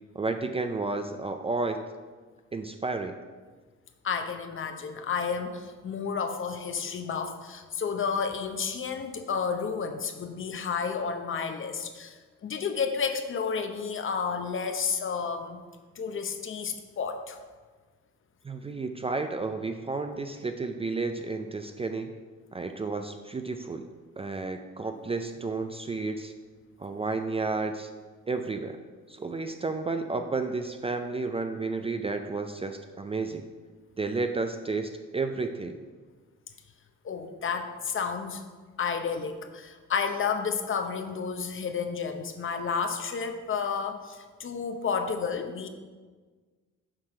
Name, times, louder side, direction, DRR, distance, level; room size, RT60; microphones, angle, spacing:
voice 1, 0.1-1.8 2.5-3.2 18.4-22.1 22.5-23.9 24.2-26.3 26.8-27.9 28.3-28.8 29.1-33.4 34.0-35.8, right 3 dB, 20° right, 6 dB, 0.4 m, -32 dB
voice 2, 4.0-15.6 16.0-17.4 37.0-38.4 38.8-45.7, left 6 dB, 40° left, 7 dB, 0.8 m, -31 dB
7.5 x 4.6 x 4.9 m, 1.4 s
cardioid pair, 90°, 30 cm